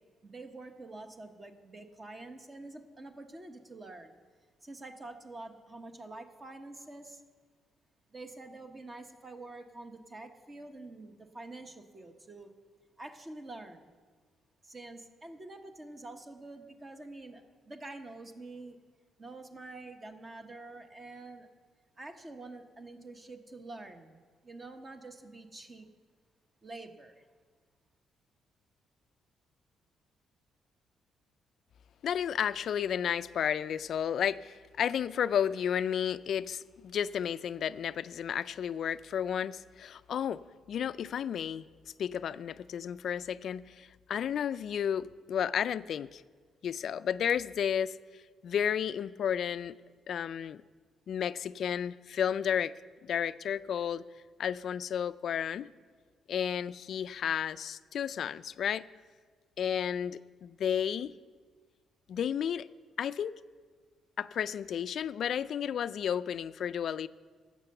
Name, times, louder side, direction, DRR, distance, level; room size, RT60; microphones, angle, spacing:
voice 1, 0.2-4.2 4.6-7.2 8.1-12.5 13.0-13.9 14.6-18.8 19.2-21.5 22.0-24.2 24.4-25.9 26.6-27.2, right 2 dB, 30° right, 6 dB, 1.1 m, -47 dB
voice 2, 32.0-41.6 42.0-46.2 46.6-49.8 50.1-50.6 51.1-52.7 53.0-54.0 54.4-55.7 56.3-58.9 59.6-61.1 62.1-62.7 63.0-63.4 64.2-67.1, left 8 dB, 65° left, 15 dB, 0.3 m, -32 dB
12.5 x 7.7 x 6.7 m, 1.5 s
cardioid pair, 90°, 0 cm